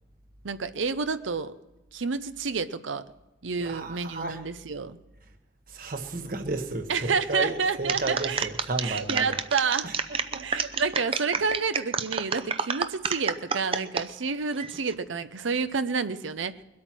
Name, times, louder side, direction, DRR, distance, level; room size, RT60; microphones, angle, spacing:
voice 1, 0.4-1.5 1.9-3.0 3.4-5.0 6.9-8.5 8.8-9.9 10.4-16.6, right 5 dB, 85° right, 12 dB, 0.7 m, -29 dB
voice 2, 3.6-4.4 5.7-9.4 9.8-10.6, right 3 dB, 45° right, 5 dB, 1.2 m, -33 dB
sound 1, 7.9-14.1 14.5-14.9, right 5 dB, 30° right, 0.6 m, -29 dB
22.0 x 8.7 x 6.1 m, 1.1 s
head